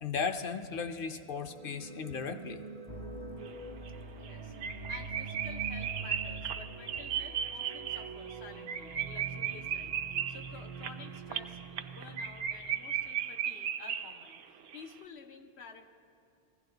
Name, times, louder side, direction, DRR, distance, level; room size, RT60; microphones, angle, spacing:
voice 1, 0.0-2.6, left 5 dB, 60° left, 9 dB, 0.9 m, -36 dB
sound 1, 1.2-13.1, right 5 dB, 55° right, 0.4 m, -46 dB
sound 2, 2.9-13.1, equal, 30° left, 0.5 m, -50 dB
sound 3, 3.5-3.6 3.9-4.0 4.2-4.3 4.6-14.4 14.7-14.8, right 9 dB, 75° right, 0.8 m, -36 dB
voice 2, 4.1-4.5 4.9-9.9 10.3-14.4 14.7-15.9, left 5 dB, 90° left, 5 dB, 1.2 m, -51 dB
20.0 x 15.5 x 3.9 m, 2.6 s
omnidirectional pair, 1.1 m